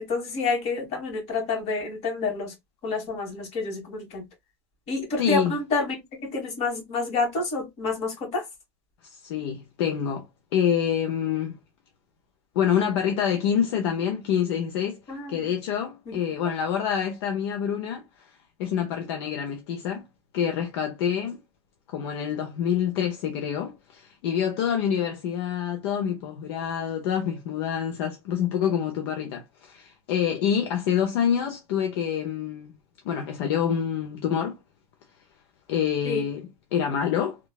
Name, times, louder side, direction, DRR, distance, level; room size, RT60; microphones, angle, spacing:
voice 1, 0.0-2.5 2.8-4.2 4.9-8.4 15.1-15.5 16.1-16.2 36.0-36.3, left 3 dB, 50° left, 1.6 m, -28 dB
voice 2, 5.2-5.5 9.1-10.3 10.5-11.6 12.5-15.0 15.3-18.0 18.6-20.0 20.3-21.4 21.9-32.7 33.0-34.6 35.7-37.4, left 8 dB, 70° left, 0.6 m, -26 dB
3.1 x 2.3 x 2.3 m
supercardioid pair, 130°, 14 cm